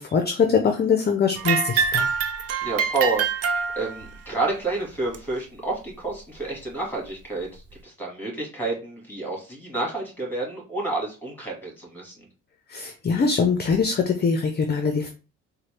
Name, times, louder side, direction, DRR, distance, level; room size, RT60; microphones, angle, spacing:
voice 1, 0.0-2.1 12.7-15.1, left 5 dB, 35° left, 6 dB, 0.5 m, -22 dB
sound 1, 1.4-4.2 5.1-5.2 6.1-6.2 7.1-7.2, right 6 dB, 55° right, 0.5 m, -25 dB
voice 2, 2.6-3.5 3.8-12.3, right 3 dB, 5° left, -1 dB, 2.0 m, -29 dB
3.9 x 2.2 x 3.2 m, 0.33 s
cardioid pair, 90°, 30 cm